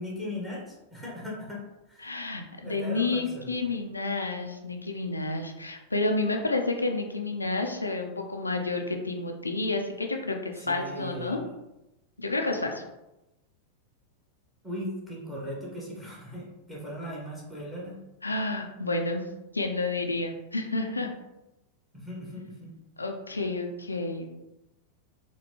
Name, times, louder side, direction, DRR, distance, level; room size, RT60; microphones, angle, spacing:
voice 1, 0.0-2.2 2.6-3.7 10.6-11.5 14.6-18.0 21.9-22.7, left 1 dB, 5° right, -4 dB, 1.1 m, -38 dB
voice 2, 2.0-11.4 12.2-12.8 18.2-19.2 19.5-21.1 23.0-24.3, left 2 dB, 80° left, 3 dB, 0.4 m, -30 dB
4.3 x 2.2 x 2.9 m, 0.96 s
figure-of-eight pair, 90°, 0 cm